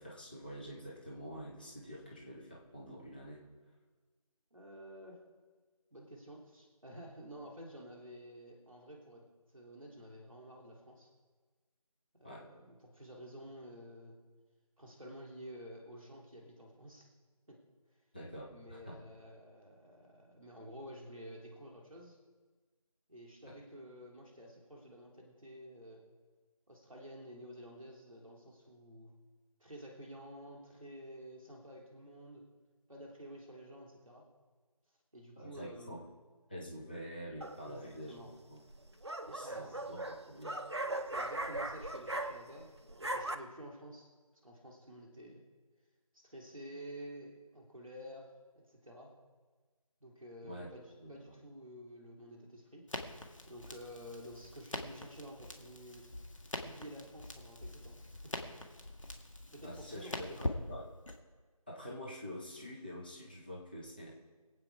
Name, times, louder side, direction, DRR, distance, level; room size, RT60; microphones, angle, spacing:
voice 1, 0.0-3.4 12.2-12.5 18.1-19.0 23.4-23.5 35.4-36.0 36.5-38.1 38.5-38.6 39.3-40.6 50.4-50.7 51.0-51.3 59.6-60.8 61.7-64.1, equal, 15° left, -5 dB, 1.2 m, -47 dB
voice 2, 4.5-5.2 5.9-11.1 12.2-14.2 14.8-17.1 17.5-17.6 17.9-18.0 18.5-22.2 23.1-26.1 26.7-29.1 29.6-32.4 32.9-34.3 35.1-36.0 37.6-38.3 39.4-39.8 41.0-42.7 43.0-44.1 44.4-45.4 46.1-49.2 50.0-53.2 53.5-56.1 56.6-58.4 59.5-60.5, equal, 5° right, -17 dB, 1.3 m, -51 dB
sound 1, 37.4-37.8 38.7-42.6 42.9-43.3, right 1 dB, 45° right, 0.8 m, -39 dB
Crackle, 52.9-61.2, left 1 dB, 55° left, 1.8 m, -44 dB
22.5 x 8.7 x 4.8 m, 1.4 s
figure-of-eight pair, 175°, 19 cm